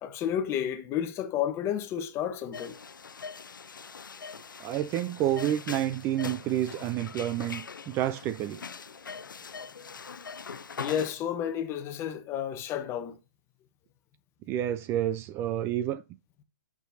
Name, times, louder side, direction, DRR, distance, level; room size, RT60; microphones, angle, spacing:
voice 1, 0.0-2.8 10.8-13.2, left 9 dB, 25° left, 1.0 m, -31 dB
sound 1, 2.5-11.1, left 5 dB, 90° left, 0.7 m, -42 dB
voice 2, 4.6-8.6 14.5-16.0, right 12 dB, 25° right, 0.4 m, -29 dB
9.0 x 6.0 x 2.7 m
hypercardioid pair, 135°, 10 cm